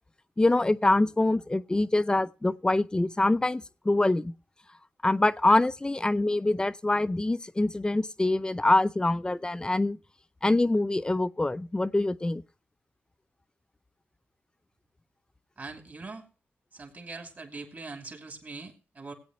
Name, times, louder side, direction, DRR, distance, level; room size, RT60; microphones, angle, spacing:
voice 1, 0.4-4.3 5.0-10.0 10.4-12.4, left 2 dB, 20° left, 0.6 m, -25 dB
voice 2, 15.6-16.3 16.7-19.1, right 3 dB, 45° right, 3.0 m, -42 dB
18.5 x 8.7 x 3.1 m
cardioid pair, 75°, 5 cm